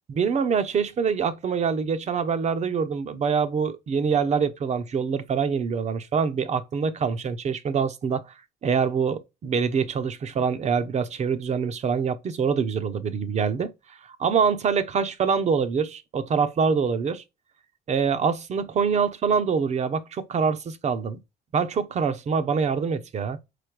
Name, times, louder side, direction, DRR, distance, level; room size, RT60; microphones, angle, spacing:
voice 1, 0.2-8.3 8.6-13.7 14.1-17.2 17.9-21.2 21.5-23.4, right 6 dB, 40° right, 0.9 m, -25 dB
5.1 x 4.3 x 6.1 m
cardioid pair, 110°, 17 cm